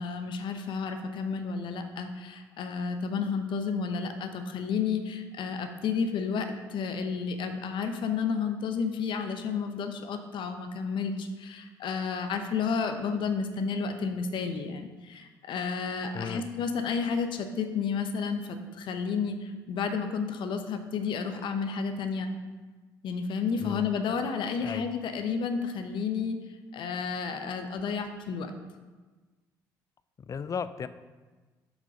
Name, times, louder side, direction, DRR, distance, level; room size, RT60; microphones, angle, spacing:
voice 1, 0.0-22.3 23.0-26.4 26.7-28.5, left 5 dB, 55° left, 7 dB, 0.8 m, -31 dB
voice 2, 30.3-30.9, left 6 dB, 35° left, 13 dB, 0.5 m, -34 dB
7.7 x 4.9 x 5.1 m, 1.3 s
figure-of-eight pair, 50°, 10 cm